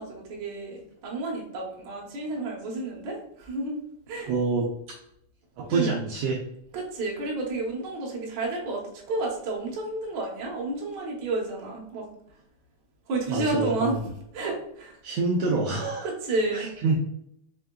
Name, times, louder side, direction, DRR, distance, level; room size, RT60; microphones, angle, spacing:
voice 1, 0.0-3.8 4.1-4.3 5.7-6.0 6.7-8.8 9.1-12.1 13.1-14.0 14.3-15.0 16.0-16.7, right 2 dB, 70° right, -2 dB, 1.0 m, -31 dB
voice 2, 4.3-5.0 5.6-6.4 13.3-14.0 15.0-16.1 16.5-17.0, right 3 dB, 90° right, -1 dB, 1.4 m, -27 dB
5.0 x 3.6 x 2.2 m, 0.75 s
omnidirectional pair, 3.5 m